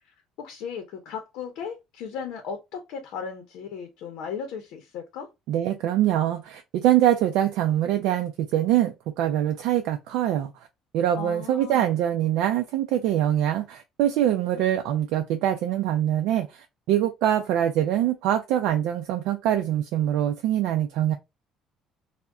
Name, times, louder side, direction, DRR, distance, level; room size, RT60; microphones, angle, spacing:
voice 1, 0.4-5.3 11.1-11.9, left 6 dB, 75° left, 0.6 m, -36 dB
voice 2, 5.5-10.5 10.9-21.1, right 11 dB, 80° right, 0.4 m, -24 dB
2.3 x 2.1 x 3.6 m
cardioid pair, 145°, 0 cm